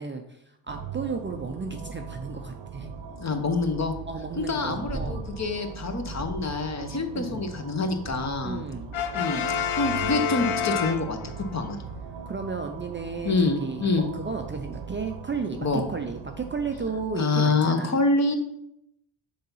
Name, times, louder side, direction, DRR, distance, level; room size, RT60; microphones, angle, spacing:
voice 1, 0.0-2.9 4.1-5.2 7.1-7.4 8.4-8.9 12.3-13.4 13.6-17.9, right 4 dB, 25° right, 5 dB, 0.5 m, -33 dB
sound 1, 0.7-17.1, right 7 dB, 60° right, 0.9 m, -40 dB
voice 2, 3.2-3.9 4.5-8.6 9.1-11.2 11.5-11.8 13.2-14.1 15.6-15.8 17.1-18.4, left 3 dB, 35° left, 6 dB, 0.9 m, -26 dB
sound 2, 4.9-5.5 6.2-6.7 8.0-8.8 10.0-10.5 11.9-12.3 14.7-14.8, right 2 dB, 5° left, 0.9 m, -38 dB
Brass instrument, 8.9-11.6, left 7 dB, 70° left, 0.8 m, -28 dB
6.6 x 4.0 x 5.5 m, 0.78 s
cardioid pair, 115°, 50 cm